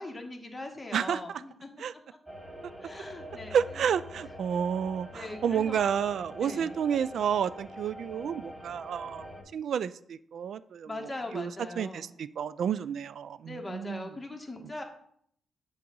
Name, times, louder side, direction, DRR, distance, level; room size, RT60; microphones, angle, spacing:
voice 1, 0.0-1.7 2.8-3.6 5.1-6.0 6.4-6.8 10.9-12.1 13.4-14.8, left 2 dB, 20° left, 1.5 m, -40 dB
voice 2, 0.9-1.4 1.8-1.9 3.5-9.3 9.5-10.9 11.3-11.5 11.8-14.1 14.6-14.7, right 8 dB, 70° right, 0.3 m, -30 dB
sound 1, 2.3-9.4, equal, 15° right, 3.0 m, -45 dB
7.6 x 3.8 x 5.4 m
cardioid pair, 70°, 0 cm